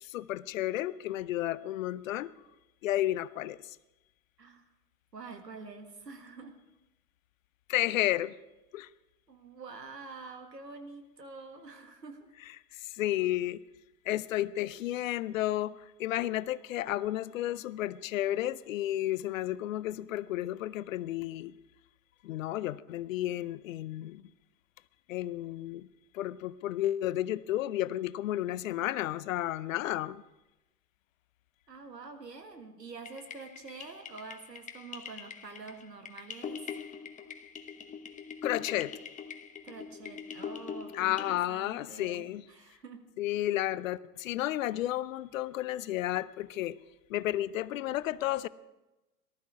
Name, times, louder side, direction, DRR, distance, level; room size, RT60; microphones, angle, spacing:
voice 1, 0.0-2.3 2.8-3.8 7.7-8.3 8.7-8.9 12.7-13.6 14.1-21.5 22.2-24.2 25.1-25.9 26.1-30.2 38.4-38.9 40.9-42.4 43.2-46.8 47.1-48.5, left 14 dB, 55° left, 0.6 m, -32 dB
voice 2, 5.1-6.6 9.3-12.3 31.7-36.9 39.6-43.1, right 4 dB, 80° right, 1.9 m, -47 dB
sound 1, 33.0-41.4, left 7 dB, 15° left, 1.0 m, -43 dB
19.0 x 13.0 x 4.8 m
figure-of-eight pair, 90°, 48 cm